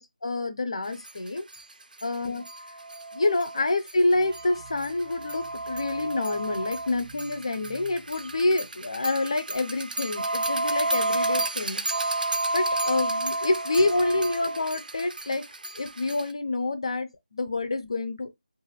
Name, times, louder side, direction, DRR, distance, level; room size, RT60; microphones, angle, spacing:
voice 1, 0.0-1.4 2.0-2.4 3.1-11.8 12.5-15.4 15.8-18.4, left 2 dB, 40° left, 0.5 m, -27 dB
sound 1, 1.1-1.2 1.5-1.6 2.0-2.1 2.4-16.3, right 2 dB, 70° right, 0.4 m, -31 dB
sound 2, 4.2-9.3, right 5 dB, 15° right, 0.5 m, -51 dB
2.5 x 2.4 x 3.1 m
figure-of-eight pair, 175°, 5 cm